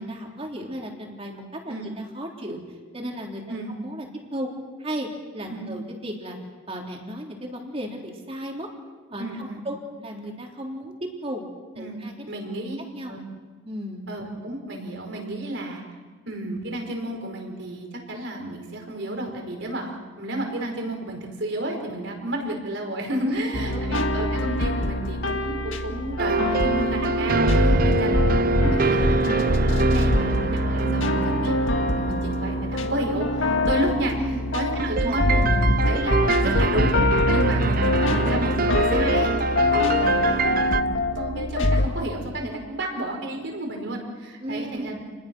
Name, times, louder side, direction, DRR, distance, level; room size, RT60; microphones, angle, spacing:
voice 1, 0.0-2.6 2.9-3.4 3.8-4.5 4.8-5.1 5.3-6.4 6.7-8.7 9.1-11.4 11.8-12.3 12.9-13.1 13.6-14.1 23.2-24.2 34.2-34.5 35.0-35.2 44.4-44.9, equal, 30° right, 0 dB, 3.7 m, -34 dB
voice 2, 9.2-9.6 11.8-12.0 12.3-12.8 13.1-13.2 14.1-15.8 16.3-31.5 31.9-34.2 34.5-37.0 37.3-45.0, right 1 dB, 65° right, 2 dB, 5.2 m, -31 dB
sound 1, 23.5-41.9, left 1 dB, 75° left, 1.8 m, -23 dB
sound 2, 26.2-33.9 34.8-40.8, right 3 dB, 45° right, 0.6 m, -25 dB
30.0 x 21.0 x 6.3 m, 1.4 s
head